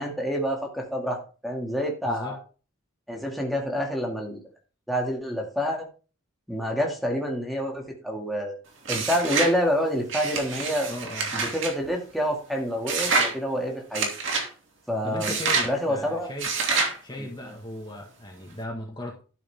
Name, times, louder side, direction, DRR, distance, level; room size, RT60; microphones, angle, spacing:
voice 1, 0.0-2.4 3.1-4.4 4.9-5.9 6.5-8.6 8.9-10.9 11.3-14.1 14.9-15.4 15.6-16.3 17.2-17.3, equal, ahead, -1 dB, 2.2 m, -28 dB
voice 2, 2.1-2.4 10.9-11.3 15.0-16.5 17.0-19.2, left 1 dB, 20° left, -1 dB, 1.7 m, -37 dB
sound 1, 8.9-9.6 10.1-11.7 12.9-13.3 13.9-14.5 15.2-15.7 16.4-17.0, right 4 dB, 60° right, 2.7 m, -26 dB
12.0 x 6.8 x 3.6 m, 0.35 s
head